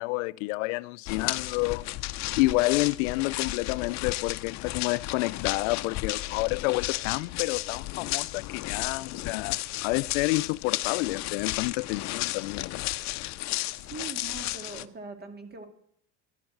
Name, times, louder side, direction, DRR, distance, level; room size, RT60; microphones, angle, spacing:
voice 1, 0.0-1.9 2.3-12.8, left 22 dB, 90° left, 0.5 m, -29 dB
sound 1, 1.1-14.9, left 17 dB, 50° left, 0.6 m, -33 dB
voice 2, 13.8-15.7, right 4 dB, 25° right, 2.3 m, -41 dB
11.5 x 11.0 x 7.9 m
supercardioid pair, 125°, 36 cm